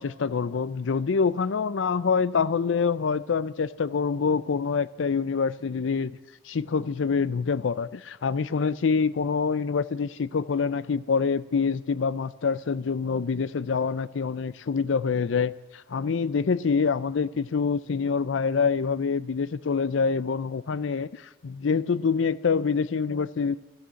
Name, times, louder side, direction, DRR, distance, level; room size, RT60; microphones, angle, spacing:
voice 1, 0.0-6.2 6.5-23.6, left 5 dB, 85° left, 17 dB, 0.5 m, -26 dB
14.0 x 13.0 x 7.6 m, 1.2 s
head